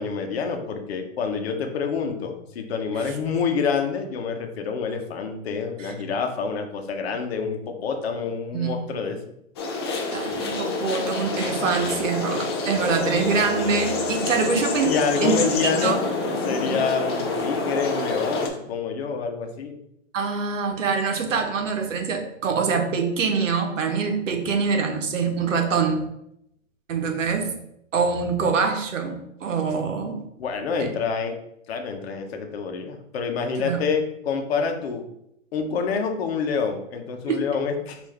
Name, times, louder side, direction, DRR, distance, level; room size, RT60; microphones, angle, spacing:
voice 1, 0.0-9.2 14.8-16.0 16.4-19.7 30.4-31.4 31.7-35.1 35.5-38.0, left 5 dB, 50° left, 4 dB, 0.9 m, -27 dB
sound 1, 9.6-18.5, left 3 dB, 20° left, 0.4 m, -27 dB
voice 2, 10.1-14.9 15.2-15.3 15.8-16.0 20.1-26.0 26.9-27.5 27.9-30.2 30.8-30.9 33.6-33.8 37.3-37.4, right 5 dB, 75° right, 5 dB, 1.0 m, -24 dB
5.4 x 2.7 x 3.3 m, 0.79 s
hypercardioid pair, 145°, 38 cm